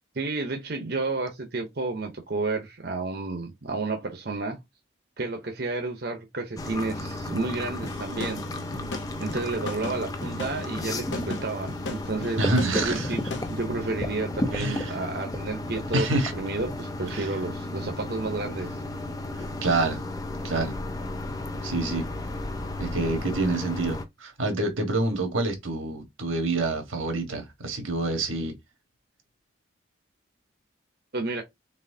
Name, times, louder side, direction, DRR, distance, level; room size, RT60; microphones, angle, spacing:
voice 1, 0.1-4.6 5.2-8.4 9.2-13.2 13.5-18.8 31.1-31.4, right 3 dB, 50° right, 0.8 m, -31 dB
sound 1, 6.6-24.0, left 1 dB, 20° left, 0.5 m, -33 dB
sound 2, 7.8-13.6, left 2 dB, 65° left, 0.8 m, -37 dB
voice 2, 12.4-13.1 14.5-15.0 15.9-16.3 17.1-17.3 19.4-20.0 20.4-20.7 21.6-22.0 22.8-28.5, right 2 dB, 90° right, 1.4 m, -27 dB
4.1 x 3.9 x 2.7 m
head